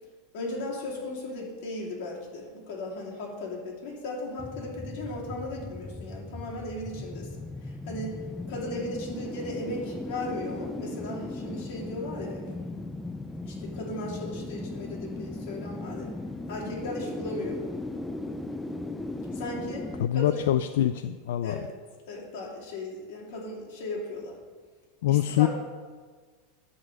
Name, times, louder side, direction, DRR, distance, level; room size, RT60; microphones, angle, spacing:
voice 1, 0.3-7.3 7.6-12.5 13.4-16.1 16.5-17.6 19.3-19.9 20.1-20.4 21.4-21.7 22.1-24.4 25.1-25.5, left 2 dB, 60° left, -3 dB, 3.0 m, -36 dB
sound 1, 4.4-20.1, left 2 dB, 5° left, 0.4 m, -37 dB
voice 2, 20.0-21.6 25.0-25.5, left 13 dB, 80° left, 11 dB, 0.3 m, -24 dB
10.5 x 4.1 x 7.6 m, 1.5 s
supercardioid pair, 160°, 0 cm